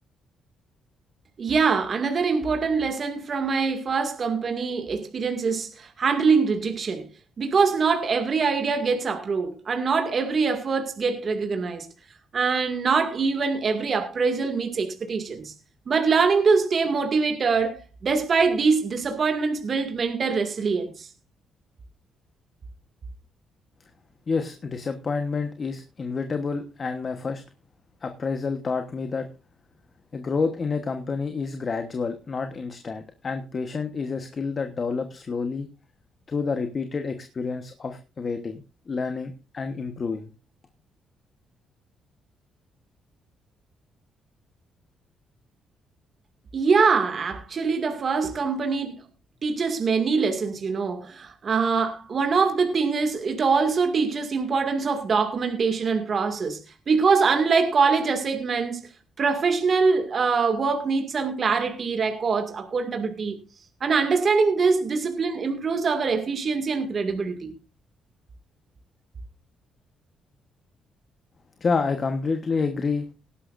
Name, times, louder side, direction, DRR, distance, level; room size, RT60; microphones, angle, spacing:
voice 1, 1.4-7.1 7.4-11.9 12.3-15.5 15.9-21.1 46.5-49.0 49.4-56.6 56.9-58.9 59.2-63.4 63.8-67.5, right 5 dB, 45° right, 2.2 m, -23 dB
voice 2, 24.3-27.4 28.0-29.3 30.1-35.7 36.3-40.3 71.6-73.1, left 4 dB, 40° left, 1.2 m, -29 dB
18.5 x 11.5 x 2.6 m
cardioid pair, 90°, 0 cm